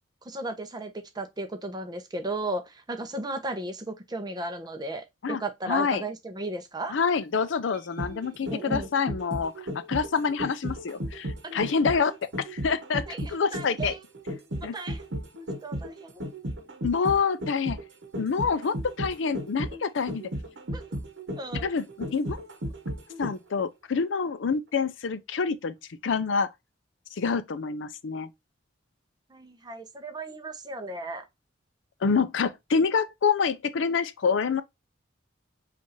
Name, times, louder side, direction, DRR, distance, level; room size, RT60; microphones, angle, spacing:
voice 1, 0.2-7.0 8.5-8.9 11.4-11.6 13.1-14.0 14.6-15.0 15.6-16.2 20.7-20.8 21.4-21.7 29.3-31.2, right 2 dB, 20° right, 0.7 m, -35 dB
voice 2, 5.7-6.0 6.9-13.9 14.6-14.7 16.8-17.8 18.2-20.3 21.5-22.4 23.2-25.7 26.0-26.5 27.2-28.3 32.0-34.6, left 5 dB, 70° left, 0.5 m, -27 dB
sound 1, 7.7-23.6 23.9-24.0, equal, 65° right, 1.0 m, -35 dB
5.2 x 2.5 x 3.1 m
head